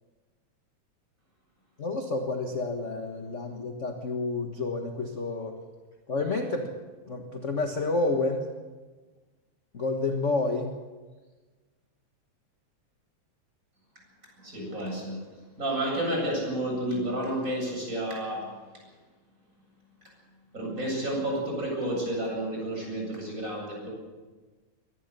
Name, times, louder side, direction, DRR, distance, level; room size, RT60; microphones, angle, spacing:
voice 1, 1.8-5.5 6.1-6.7 7.1-8.5 9.7-10.7, left 3 dB, 35° left, 4 dB, 1.2 m, -29 dB
voice 2, 14.4-15.2 15.6-18.5 20.5-23.9, right 1 dB, 25° right, -1 dB, 8.3 m, -30 dB
23.0 x 19.0 x 6.9 m, 1.3 s
omnidirectional pair, 3.4 m